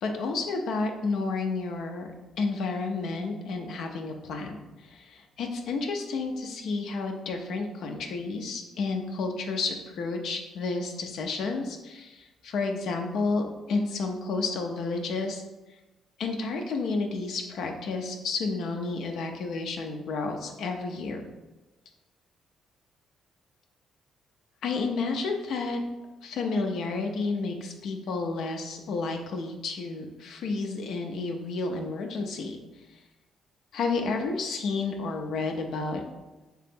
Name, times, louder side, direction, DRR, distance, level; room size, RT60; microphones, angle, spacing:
voice 1, 0.0-2.1 2.4-15.4 16.2-21.3 24.6-25.8 26.2-32.6 33.7-36.0, left 3 dB, 75° left, 4 dB, 0.5 m, -31 dB
3.6 x 2.9 x 3.5 m, 1.1 s
cardioid pair, 90°, 0 cm